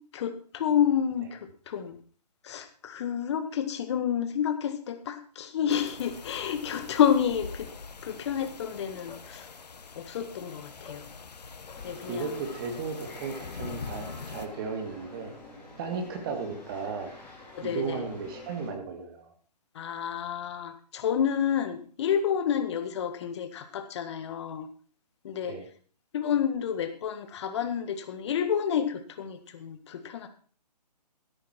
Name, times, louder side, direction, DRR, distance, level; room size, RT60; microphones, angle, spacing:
voice 1, 0.1-2.0 2.4-7.7 8.0-9.5 10.0-11.1 11.8-12.5 17.5-18.0 19.8-24.7 25.2-25.6 26.1-30.3, left 8 dB, 40° left, 9 dB, 1.7 m, -29 dB
sound 1, 5.7-14.5, left 5 dB, 70° left, 1.5 m, -44 dB
sound 2, 11.7-18.7, left 2 dB, 5° left, 4.1 m, -48 dB
voice 2, 12.1-15.3 15.8-17.1 17.6-19.3 25.4-25.7, right 5 dB, 35° right, 4 dB, 2.2 m, -35 dB
13.0 x 10.5 x 4.5 m, 0.42 s
figure-of-eight pair, 145°, 21 cm